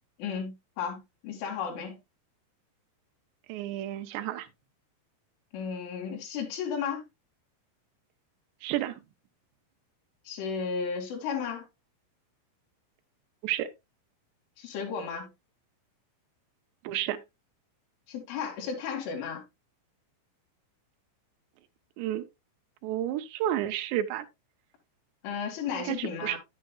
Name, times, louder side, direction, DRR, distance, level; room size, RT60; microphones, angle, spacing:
voice 1, 0.2-2.0 5.5-7.0 10.3-11.7 14.6-15.3 18.1-19.4 25.2-26.4, left 6 dB, 75° left, 4.8 m, -34 dB
voice 2, 3.5-4.5 8.6-9.0 13.4-13.7 16.8-17.2 22.0-22.3 22.8-24.3 25.8-26.4, right 12 dB, 85° right, 2.4 m, -31 dB
9.9 x 9.2 x 2.3 m
omnidirectional pair, 5.8 m